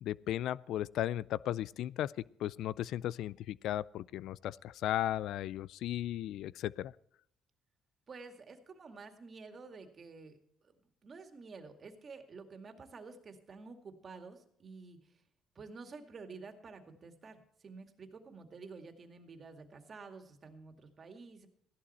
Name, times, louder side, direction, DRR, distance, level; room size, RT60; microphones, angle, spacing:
voice 1, 0.0-6.9, left 12 dB, 75° left, 22 dB, 0.4 m, -36 dB
voice 2, 8.1-10.4 10.6-10.8 11.0-15.0 15.6-21.5, right 4 dB, 40° right, 6 dB, 2.2 m, -50 dB
15.5 x 11.5 x 4.3 m, 0.71 s
cardioid pair, 95°, 0 cm